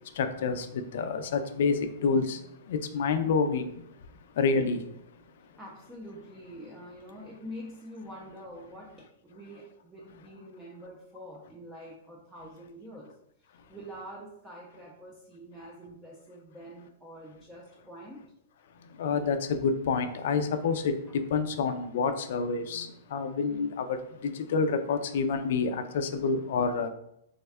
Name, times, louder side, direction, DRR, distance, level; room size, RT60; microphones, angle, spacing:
voice 1, 0.0-3.8 4.3-4.8 18.8-26.9, left 5 dB, 60° left, 0.3 m, -28 dB
voice 2, 5.6-13.1 13.7-18.2, equal, 5° right, 0.4 m, -46 dB
3.4 x 2.2 x 3.4 m
supercardioid pair, 160°, 0 cm